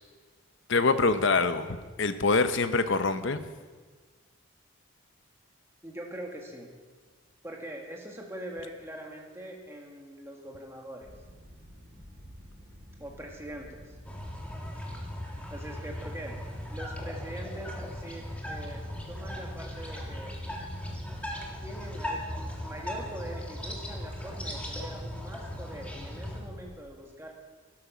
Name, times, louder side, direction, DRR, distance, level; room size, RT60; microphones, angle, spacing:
voice 1, 0.7-3.5, left 3 dB, 60° left, 11 dB, 0.7 m, -25 dB
voice 2, 5.8-6.7 7.4-11.1 13.0-13.9 15.5-18.8 19.1-20.3 21.6-27.3, right 1 dB, 10° right, 0 dB, 1.6 m, -43 dB
sound 1, 11.0-26.7, equal, 50° right, 5.1 m, -51 dB
sound 2, 14.0-26.4, left 1 dB, 5° left, 1.6 m, -38 dB
12.5 x 11.0 x 6.1 m, 1.4 s
head